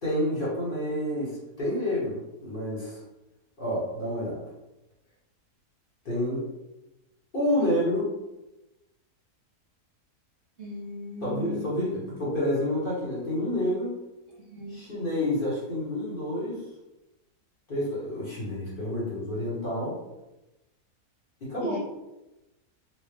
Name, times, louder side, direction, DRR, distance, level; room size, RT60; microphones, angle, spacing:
voice 1, 0.0-3.0 3.6-4.4 6.0-6.4 7.3-8.1 11.2-14.0 14.7-16.6 17.7-20.0 21.4-21.8, left 1 dB, 40° left, -8 dB, 1.1 m, -29 dB
voice 2, 10.6-11.9 14.5-14.8 21.6-21.8, left 1 dB, 50° right, -6 dB, 1.0 m, -37 dB
4.3 x 2.3 x 3.2 m, 0.99 s
omnidirectional pair, 1.7 m